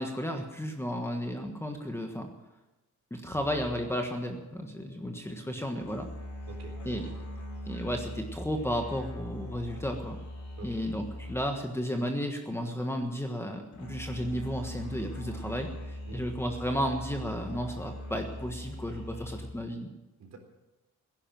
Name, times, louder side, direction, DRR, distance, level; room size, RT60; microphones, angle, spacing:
voice 1, 0.0-2.3 3.1-6.1 6.8-7.0 7.7-10.2 10.6-19.9, equal, 10° left, 3 dB, 1.5 m, -33 dB
sound 1, 3.3-11.7 13.7-19.5, left 1 dB, 65° left, 4.9 m, -41 dB
voice 2, 5.5-5.9 6.5-7.2 10.6-10.8 16.1-16.2 20.2-20.4, right 4 dB, 55° right, 3 dB, 4.0 m, -47 dB
16.5 x 11.0 x 7.7 m, 1.0 s
cardioid pair, 150°, 31 cm